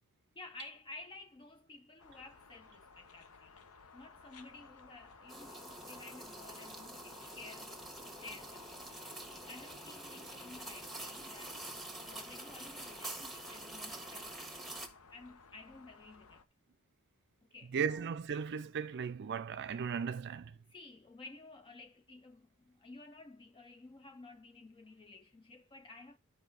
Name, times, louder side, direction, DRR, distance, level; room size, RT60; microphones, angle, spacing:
voice 1, 0.4-3.6 3.9-8.8 9.1-11.6 12.0-14.5 15.1-16.4 17.5-18.1 20.7-26.2, left 3 dB, 25° left, 0.4 m, -53 dB
sound 1, 2.0-16.4, left 4 dB, 80° left, 0.9 m, -58 dB
sound 2, 5.3-14.9, right 1 dB, ahead, 1.4 m, -46 dB
voice 2, 17.7-20.5, right 6 dB, 50° right, 0.4 m, -36 dB
11.5 x 4.9 x 3.9 m
head